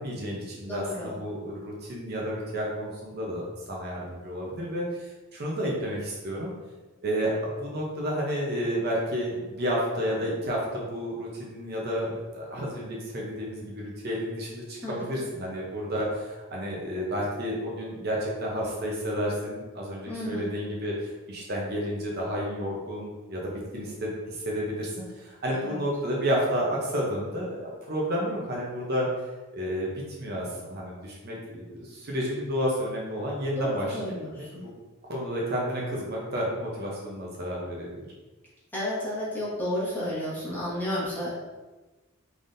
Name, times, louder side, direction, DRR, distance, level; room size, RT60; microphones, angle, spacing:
voice 1, 0.0-3.4 3.7-6.5 7.0-29.1 29.5-34.7 35.0-38.1, equal, 50° right, -3 dB, 0.7 m, -31 dB
voice 2, 0.6-1.2 14.8-15.2 20.1-20.5 25.5-25.8 33.5-34.6 38.7-41.3, left 1 dB, 10° left, -9 dB, 1.3 m, -32 dB
3.9 x 3.5 x 2.6 m, 1.2 s
head